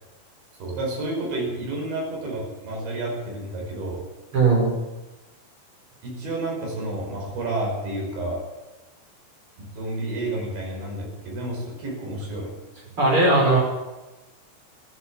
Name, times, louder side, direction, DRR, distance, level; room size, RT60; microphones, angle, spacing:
voice 1, 0.6-4.0 6.0-8.4 9.6-12.5, right 2 dB, 70° right, -1 dB, 8.0 m, -30 dB
voice 2, 4.3-4.7 13.0-13.6, right 3 dB, 30° right, -2 dB, 6.0 m, -18 dB
14.0 x 13.5 x 7.5 m, 1.1 s
omnidirectional pair, 5.4 m